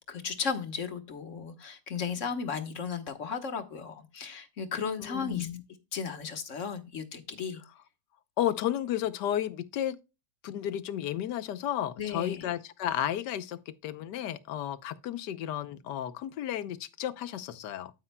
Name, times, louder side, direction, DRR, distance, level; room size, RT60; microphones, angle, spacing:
voice 1, 0.1-5.5 5.9-7.6 12.0-12.4, left 6 dB, 50° left, 1.4 m, -35 dB
voice 2, 5.0-5.6 8.4-10.0 10.4-17.9, left 11 dB, 85° left, 1.4 m, -33 dB
9.6 x 8.9 x 2.2 m
omnidirectional pair, 1.8 m